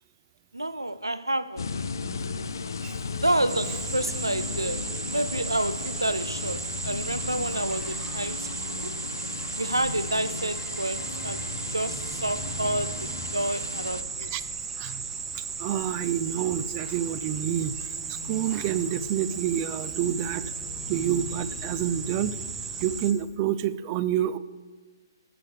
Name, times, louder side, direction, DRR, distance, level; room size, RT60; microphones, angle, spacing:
voice 1, 0.5-1.7 3.2-9.0 9.6-11.4 11.7-14.3, right 1 dB, 90° right, 0.5 m, -29 dB
sound 1, 1.6-14.0, left 5 dB, 60° left, 0.6 m, -35 dB
sound 2, 3.5-23.1, right 5 dB, 15° right, 0.8 m, -35 dB
sound 3, 5.5-22.8, left 2 dB, 10° left, 1.2 m, -46 dB
voice 2, 15.3-20.5 20.9-22.4 22.8-24.4, right 10 dB, 30° right, 0.4 m, -28 dB
16.5 x 6.7 x 3.3 m
figure-of-eight pair, 125°, 2 cm